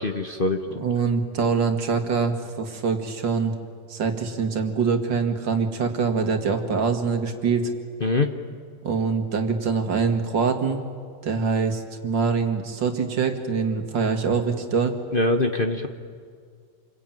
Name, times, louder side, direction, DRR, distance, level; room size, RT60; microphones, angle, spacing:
voice 1, 0.0-0.7 8.0-8.3 15.1-15.9, left 2 dB, 35° left, 6 dB, 1.0 m, -23 dB
voice 2, 0.7-3.5 3.9-7.7 8.8-10.8 11.2-15.0, right 5 dB, 70° right, 6 dB, 2.6 m, -24 dB
27.5 x 22.5 x 9.1 m, 2.1 s
omnidirectional pair, 2.0 m